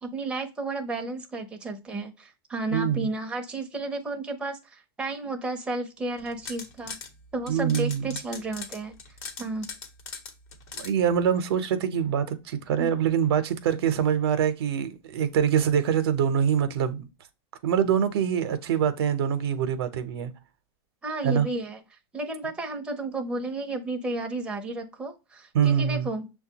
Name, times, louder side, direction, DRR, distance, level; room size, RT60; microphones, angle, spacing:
voice 1, 0.0-7.0 7.3-9.0 9.4-9.7 12.8-12.9 21.0-21.8 22.1-26.3, right 2 dB, 10° right, 0.7 m, -32 dB
voice 2, 2.7-3.1 7.5-8.1 10.8-17.1 17.6-20.3 21.2-21.5 25.5-26.1, right 8 dB, 80° right, 0.7 m, -24 dB
sound 1, 6.2-7.1 7.5-10.9, left 5 dB, 50° left, 1.1 m, -39 dB
6.3 x 2.3 x 2.8 m
supercardioid pair, 145°, 13 cm